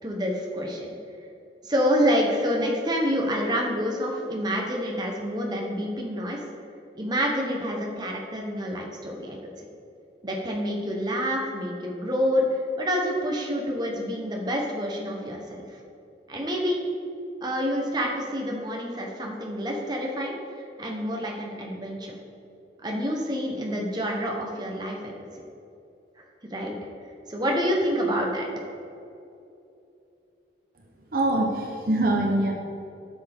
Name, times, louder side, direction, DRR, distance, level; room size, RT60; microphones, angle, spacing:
voice 1, 0.0-0.9 1.6-6.4 6.9-9.4 10.2-15.6 16.3-16.8 17.4-20.4 20.8-22.2 22.8-25.1 26.5-26.8 27.3-28.5, equal, 25° right, -1 dB, 1.1 m, -27 dB
voice 2, 31.1-32.5, right 1 dB, 50° right, 1 dB, 0.9 m, -23 dB
12.0 x 7.0 x 3.6 m, 2.7 s
head